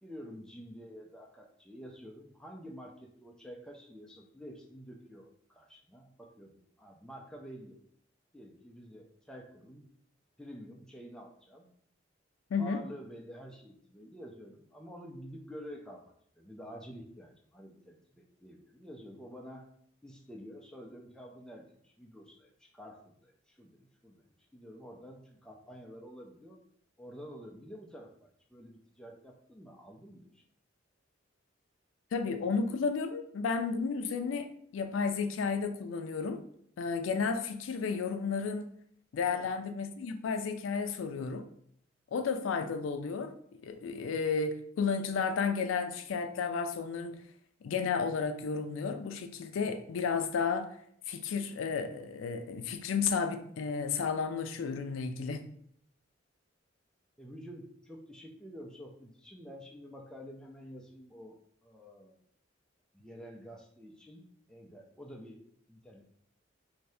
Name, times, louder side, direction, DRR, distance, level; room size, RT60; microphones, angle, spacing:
voice 1, 0.0-7.8 8.3-9.8 10.4-11.7 12.6-19.7 20.0-24.2 24.5-26.6 27.0-30.4 39.2-39.5 57.2-62.2 62.9-65.4 65.7-66.0, equal, 5° left, 0 dB, 0.4 m, -49 dB
voice 2, 12.5-12.8 32.1-36.4 36.8-38.7 39.1-41.5 42.1-43.3 43.6-47.2 47.6-50.7 51.1-55.5, left 5 dB, 85° left, 7 dB, 0.4 m, -32 dB
2.7 x 2.7 x 3.3 m, 0.65 s
head